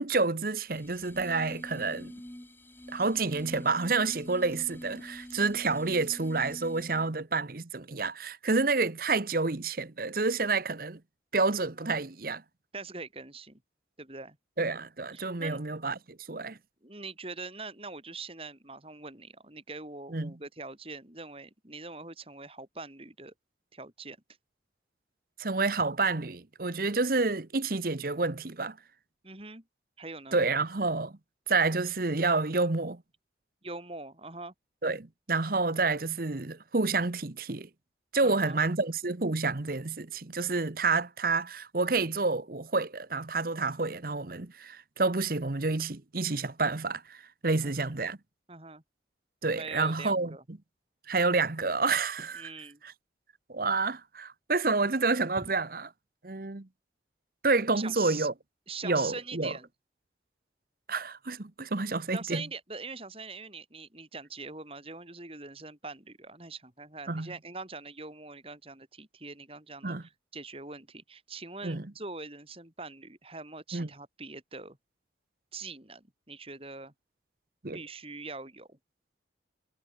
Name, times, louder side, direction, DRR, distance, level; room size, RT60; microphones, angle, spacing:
voice 1, 0.0-2.1 2.9-11.0 11.3-12.4 14.6-16.6 20.1-20.3 25.4-28.8 30.3-31.2 31.5-33.0 34.8-37.7 38.1-48.2 49.4-50.4 51.1-52.5 53.5-55.9 56.2-56.7 57.4-58.3 58.8-59.5 60.9-62.4 67.1-67.3 69.8-70.0 71.6-71.8 73.7-73.9 77.6-77.8, right 3 dB, 50° right, 1.0 m, -29 dB
sound 1, 0.7-7.2, equal, 10° left, 1.1 m, -45 dB
voice 2, 12.7-13.6 14.0-14.4 15.1-15.6 16.8-23.3 23.7-24.2 29.2-29.6 30.0-30.4 33.6-34.5 38.2-38.6 47.5-47.7 48.5-48.8 49.6-50.4 52.3-52.8 55.4-55.5 57.7-58.3 58.7-59.7 62.1-74.8 75.5-76.9 77.7-78.8, right 3 dB, 30° right, 3.6 m, -43 dB
head